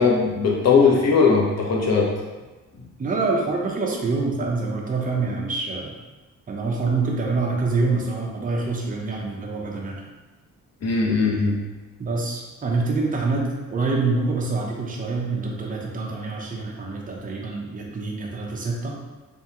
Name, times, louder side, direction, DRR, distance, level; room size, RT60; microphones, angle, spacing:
voice 1, 0.0-2.1 2.8-2.9 10.8-11.6, left 4 dB, 55° left, -2 dB, 0.9 m, -19 dB
voice 2, 3.0-5.9 6.5-10.0 12.0-19.0, right 3 dB, 25° right, -2 dB, 0.7 m, -26 dB
3.5 x 3.4 x 2.9 m, 1.2 s
cardioid pair, 125°, 30 cm